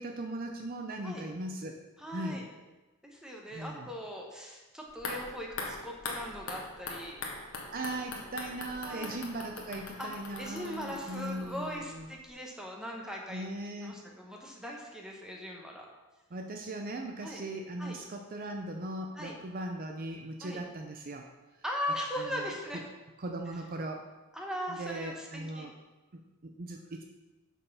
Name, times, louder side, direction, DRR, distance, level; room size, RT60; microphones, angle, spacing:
voice 1, 0.0-1.8 2.1-2.4 3.5-3.9 7.7-12.1 13.3-14.0 16.3-21.3 22.2-22.5 23.2-24.1 24.7-25.7 26.1-27.0, right 1 dB, 45° right, 3 dB, 0.5 m, -39 dB
voice 2, 2.0-2.5 3.0-7.2 8.8-9.2 10.0-10.1 10.4-13.5 13.8-15.9 17.2-17.4 17.8-18.0 19.2-19.3 20.4-20.6 21.6-22.8 24.3-25.7, equal, 5° right, -1 dB, 1.1 m, -39 dB
sound 1, 4.9-12.0 12.3-12.4, left 3 dB, 70° left, 1.3 m, -42 dB
6.5 x 5.4 x 5.6 m, 1.1 s
head